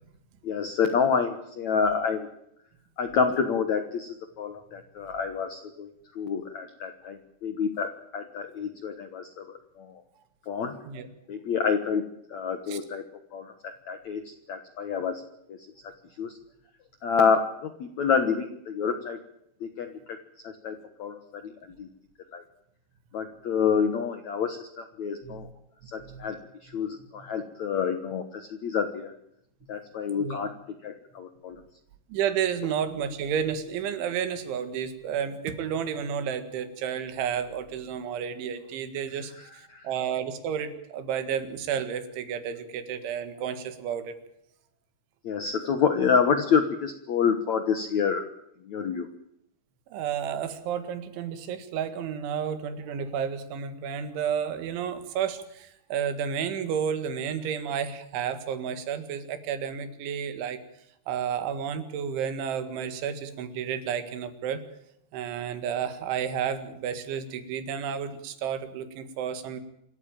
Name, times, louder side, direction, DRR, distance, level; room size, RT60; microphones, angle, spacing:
voice 1, 0.4-2.3 3.0-10.0 10.5-10.8 11.3-13.0 13.3-15.2 15.5-15.6 16.2-16.4 17.0-19.2 19.6-20.2 20.4-21.5 21.8-21.9 22.3-22.4 23.1-25.5 25.9-29.1 29.7-30.5 30.8-31.6 39.3-39.9 45.2-48.2 48.6-49.1, left 6 dB, 75° left, 8 dB, 1.7 m, -28 dB
voice 2, 32.1-39.3 39.8-44.2 49.9-60.6 61.1-64.6 65.1-69.6, right 8 dB, 85° right, 10 dB, 4.2 m, -31 dB
26.5 x 14.0 x 9.0 m, 0.79 s
omnidirectional pair, 5.3 m